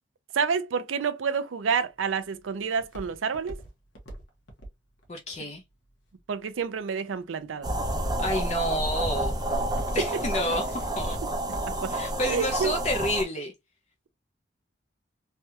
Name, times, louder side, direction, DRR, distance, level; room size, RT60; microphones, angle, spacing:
voice 1, 0.3-3.6 6.3-7.7 10.0-10.1 11.8-11.9 12.3-12.7, right 6 dB, 90° right, 0.5 m, -28 dB
Walk footsteps, 1.7-6.8 7.4-7.8 8.4-8.7 9.1-11.9 12.3-12.4, right 1 dB, 70° left, 1.0 m, -43 dB
voice 2, 5.1-5.6 8.2-9.3 9.9-11.2 11.9-13.5, left 1 dB, 35° left, 0.5 m, -29 dB
sound 1, 7.6-13.2, right 1 dB, 20° right, 0.5 m, -29 dB
3.3 x 2.3 x 2.7 m
head